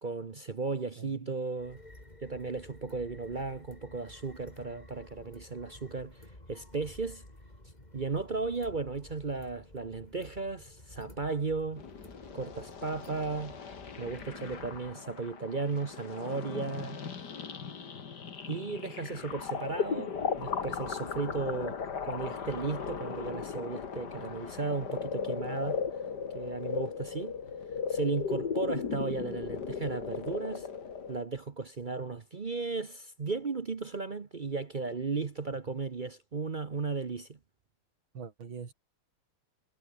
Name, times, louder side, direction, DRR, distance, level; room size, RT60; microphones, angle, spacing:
voice 1, 0.0-1.8 2.2-7.2 7.9-11.8 12.3-13.6 14.0-17.0 18.5-25.8 26.3-27.4 27.9-30.7 31.1-37.4, right 4 dB, 50° right, 0.6 m, -35 dB
voice 2, 1.0-1.3 38.1-38.7, right 6 dB, 65° right, 3.6 m, -43 dB
sound 1, 1.6-14.9, left 1 dB, 20° left, 5.4 m, -53 dB
sound 2, 11.8-31.2, left 6 dB, 50° left, 2.5 m, -37 dB
omnidirectional pair, 2.4 m